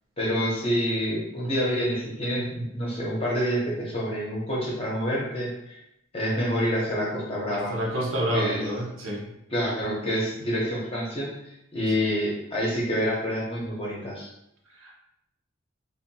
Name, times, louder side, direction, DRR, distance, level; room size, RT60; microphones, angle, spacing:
voice 1, 0.2-5.8 6.1-7.8 8.3-8.7 9.5-14.3, equal, 25° left, -5 dB, 0.7 m, -27 dB
voice 2, 7.5-9.3 14.8-14.9, equal, 75° right, -2 dB, 0.7 m, -28 dB
2.7 x 2.4 x 2.7 m, 0.79 s
head